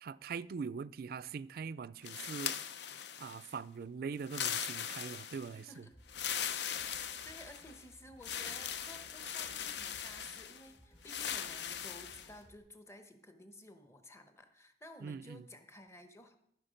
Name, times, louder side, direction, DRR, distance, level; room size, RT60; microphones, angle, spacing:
voice 1, 0.0-2.6 3.2-5.8 15.0-15.4, right 5 dB, 55° right, 0.3 m, -42 dB
sound 1, 2.0-3.5 4.2-5.6 6.1-7.8 8.2-10.6 11.0-12.3, left 8 dB, 70° left, 0.7 m, -40 dB
sound 2, 5.9-12.6, equal, 30° left, 2.0 m, -62 dB
voice 2, 6.8-16.4, left 1 dB, 15° left, 0.9 m, -54 dB
14.0 x 6.2 x 5.1 m
head